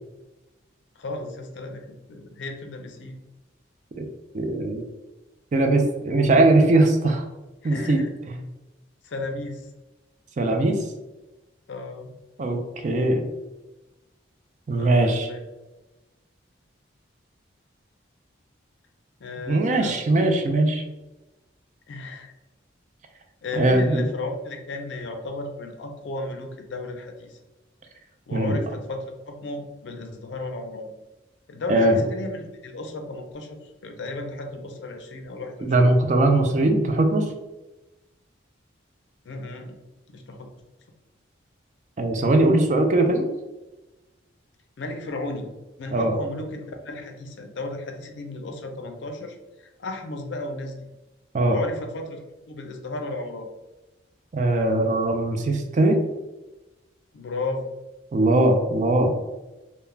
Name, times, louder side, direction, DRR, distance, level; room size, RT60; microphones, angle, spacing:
voice 1, 1.0-3.2 7.6-8.1 9.0-9.7 11.7-12.1 14.8-15.4 19.2-20.0 21.9-22.3 23.4-27.4 28.3-30.9 31.5-35.7 39.2-39.8 40.1-40.5 44.8-45.5 45.8-50.9 51.5-53.5 57.1-57.7, left 2 dB, 65° left, 4 dB, 0.4 m, -34 dB
voice 2, 4.3-4.9 5.5-7.2 7.6-8.0 8.3-8.4 10.4-10.8 12.4-13.2 14.7-15.3 19.5-20.8 23.5-24.1 28.3-28.6 31.7-32.0 35.6-37.3 42.0-43.3 45.9-46.2 51.3-51.6 54.3-56.0 58.1-59.1, right 2 dB, 40° right, 4 dB, 0.3 m, -20 dB
2.3 x 2.0 x 3.2 m, 1.1 s
head